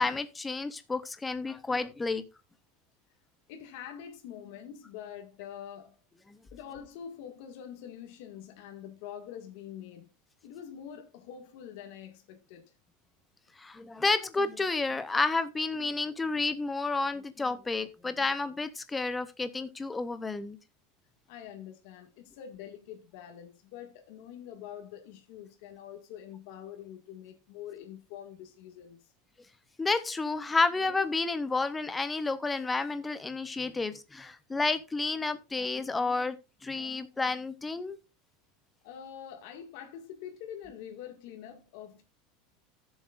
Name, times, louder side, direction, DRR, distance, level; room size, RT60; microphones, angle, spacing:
voice 1, 0.0-2.2 6.3-6.4 13.6-20.6 29.8-38.0, left 3 dB, 10° left, 0.7 m, -30 dB
voice 2, 3.5-6.0 6.5-10.1 10.4-12.7 21.3-29.0 38.8-42.0, left 9 dB, 55° left, 1.9 m, -45 dB
16.5 x 7.2 x 2.5 m
supercardioid pair, 170°, 0 cm